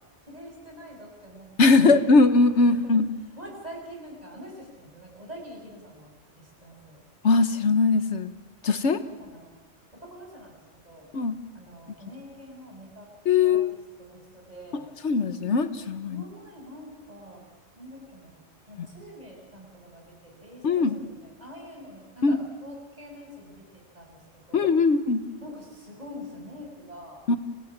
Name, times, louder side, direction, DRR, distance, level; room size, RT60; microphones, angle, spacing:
voice 1, 0.3-2.0 2.6-6.1 6.4-7.0 9.1-9.5 9.9-11.1 11.5-13.1 13.4-14.9 16.1-17.4 17.8-18.4 18.7-24.7 25.4-27.2, equal, 35° right, -1 dB, 7.1 m, -45 dB
voice 2, 1.6-3.1 7.2-8.3 8.6-9.0 11.1-11.4 13.3-13.8 15.0-16.2 20.6-20.9 22.2-22.4 24.5-25.2 27.3-27.4, left 4 dB, 75° left, 11 dB, 1.5 m, -20 dB
28.5 x 16.5 x 7.4 m, 1.3 s
omnidirectional pair, 1.2 m